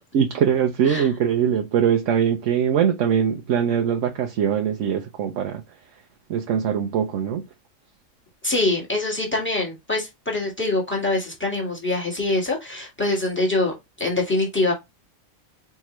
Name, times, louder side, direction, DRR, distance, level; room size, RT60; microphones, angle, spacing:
voice 1, 0.1-5.6 6.3-7.4, right 8 dB, 70° right, 1.0 m, -22 dB
voice 2, 8.4-14.7, left 2 dB, 10° left, 1.7 m, -24 dB
4.5 x 3.7 x 3.0 m
omnidirectional pair, 1.4 m